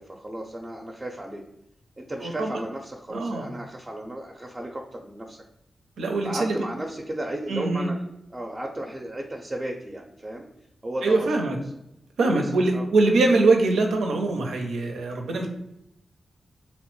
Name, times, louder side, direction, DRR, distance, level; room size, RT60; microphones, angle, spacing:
voice 1, 0.0-1.4 2.0-5.4 6.2-8.0 8.3-10.5 10.8-11.3 12.2-12.4 12.7-12.8, right 1 dB, 25° right, 0 dB, 0.5 m, -34 dB
voice 2, 2.2-2.6 3.1-3.5 6.0-6.6 7.5-7.9 11.0-11.6 12.2-15.5, right 3 dB, 90° right, 2 dB, 0.4 m, -23 dB
2.9 x 2.0 x 3.0 m, 0.82 s
cardioid pair, 45°, 0 cm